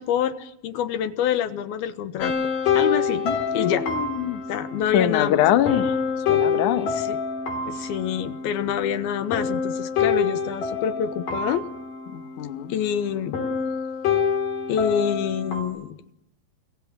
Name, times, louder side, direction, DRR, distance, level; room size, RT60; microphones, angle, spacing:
voice 1, 0.0-2.3 2.7-3.2 3.5-3.8 4.5-5.4 7.0-7.2 7.7-11.6 12.7-13.4 14.7-16.1, left 8 dB, 70° left, 10 dB, 2.7 m, -26 dB
sound 1, 2.2-13.0 13.3-15.6, left 6 dB, 50° left, 4.5 m, -27 dB
voice 2, 3.2-4.4 4.9-6.0 6.3-7.0 12.1-12.7, left 12 dB, 90° left, 9 dB, 1.7 m, -24 dB
29.0 x 24.5 x 7.4 m, 0.82 s
omnidirectional pair, 5.4 m